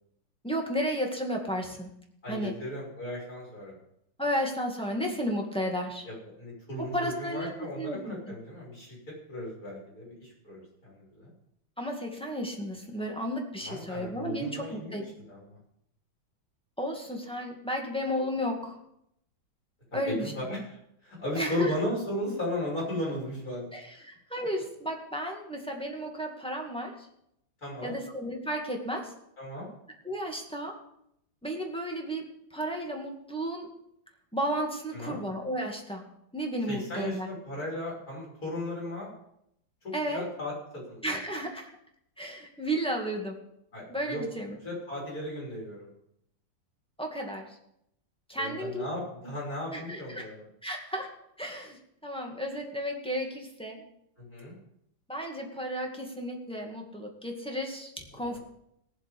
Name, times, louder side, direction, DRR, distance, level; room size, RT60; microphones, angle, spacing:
voice 1, 0.4-1.9 2.3-2.5 4.2-6.1 6.8-8.2 11.8-15.0 16.8-18.8 19.9-20.3 21.4-21.8 23.7-27.1 27.8-29.1 30.0-30.8 31.4-33.7 34.3-36.1 36.3-37.3 39.9-40.3 41.0-41.7 42.2-43.4 43.9-44.6 47.0-47.6 48.3-48.8 49.7-50.3 50.6-53.8 55.1-58.4, equal, 5° left, 1 dB, 2.0 m, -33 dB
voice 2, 2.2-3.7 6.0-9.0 9.3-11.3 13.6-15.6 19.9-24.1 27.6-27.9 29.4-29.7 34.9-35.2 36.7-39.1 39.8-41.2 43.7-44.3 44.6-45.9 48.4-50.4 54.2-54.5 58.1-58.4, left 1 dB, 45° left, -4 dB, 6.7 m, -36 dB
19.0 x 7.4 x 5.4 m, 0.77 s
omnidirectional pair, 2.1 m